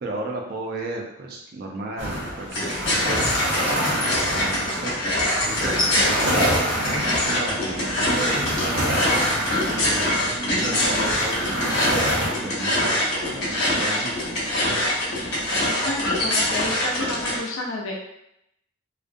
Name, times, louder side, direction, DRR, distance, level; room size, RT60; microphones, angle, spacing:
voice 1, 0.0-4.9 5.5-14.2, right 2 dB, 50° right, 1 dB, 0.4 m, -33 dB
sound 1, 2.0-12.3, equal, 70° right, 0.8 m, -27 dB
sound 2, 2.5-17.4, left 1 dB, 55° left, 0.8 m, -24 dB
voice 2, 15.8-17.9, left 2 dB, 90° left, -1 dB, 0.6 m, -30 dB
2.4 x 2.1 x 2.5 m, 0.80 s
head